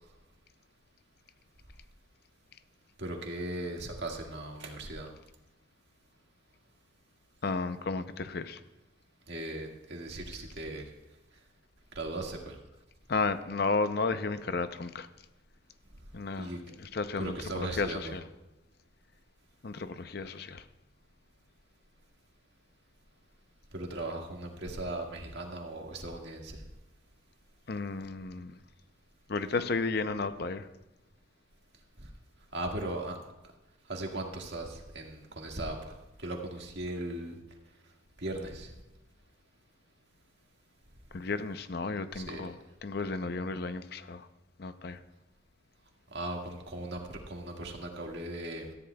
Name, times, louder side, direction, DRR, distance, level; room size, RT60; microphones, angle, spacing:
voice 1, 3.0-5.1 9.3-10.9 12.0-12.6 16.4-16.6 17.2-18.0 23.7-26.6 32.0-32.1 32.5-33.2 33.9-35.9 36.2-37.4 38.2-38.7 42.1-42.5 46.1-48.7, right 1 dB, 55° right, 1 dB, 1.8 m, -38 dB
voice 2, 7.4-8.6 13.1-15.1 16.1-16.5 16.8-18.2 19.6-20.6 27.7-28.6 29.3-30.7 41.1-44.3 44.6-45.0, left 3 dB, 50° left, 11 dB, 0.6 m, -33 dB
18.0 x 13.5 x 2.3 m, 1.0 s
head